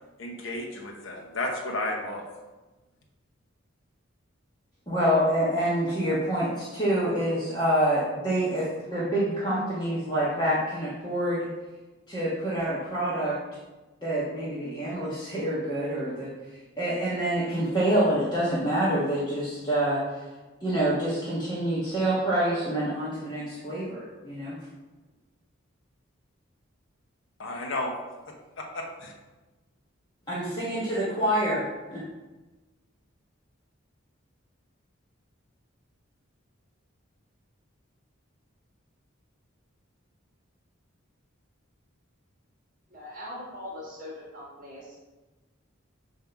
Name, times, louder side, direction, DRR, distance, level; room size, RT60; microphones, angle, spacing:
voice 1, 0.2-2.3 27.4-27.9 28.3-29.1, left 2 dB, 70° left, 1 dB, 0.9 m, -33 dB
voice 2, 4.9-11.5 12.1-13.4 14.0-16.3 16.8-20.0 20.6-24.6 30.3-31.6 31.9-32.0, right 1 dB, 20° left, -9 dB, 1.1 m, -26 dB
voice 3, 42.9-45.1, left 1 dB, 40° right, -5 dB, 1.3 m, -41 dB
7.0 x 2.8 x 5.8 m, 1.2 s
head